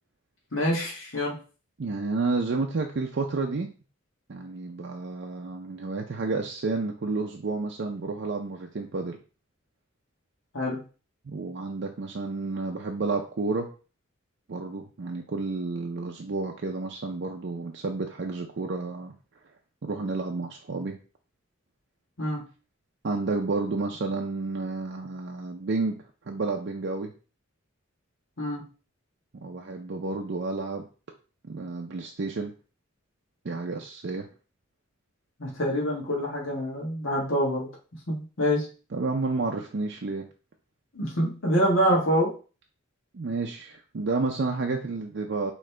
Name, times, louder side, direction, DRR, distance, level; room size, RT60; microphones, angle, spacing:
voice 1, 0.5-1.4 10.5-10.8 22.2-22.4 28.4-28.6 35.4-37.7 38.1-38.7 40.9-42.3, equal, 75° left, -4 dB, 1.4 m, -26 dB
voice 2, 1.8-3.7 4.3-9.2 11.3-13.7 14.5-19.1 19.8-21.0 23.0-27.1 29.4-30.9 31.4-32.5 33.4-34.3 38.9-40.3 43.1-45.5, right 3 dB, 55° right, 2 dB, 0.5 m, -30 dB
5.0 x 3.0 x 3.3 m, 0.36 s
head